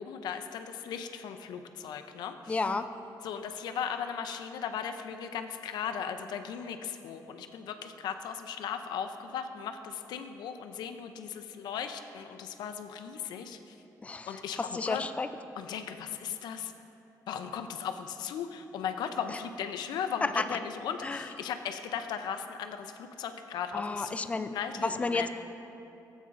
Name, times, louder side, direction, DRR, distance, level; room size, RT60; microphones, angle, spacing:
voice 1, 0.0-2.7 3.2-13.8 14.3-15.0 15.6-16.7 17.3-24.1 24.5-25.3, left 7 dB, 80° left, 7 dB, 0.5 m, -37 dB
voice 2, 2.5-2.9 14.0-14.3 14.5-15.3 19.3-19.4 20.2-20.4 21.0-21.2 23.7-24.5 24.8-25.3, left 3 dB, 20° left, 9 dB, 0.3 m, -31 dB
14.5 x 8.0 x 2.5 m, 2.8 s
cardioid pair, 135°, 7 cm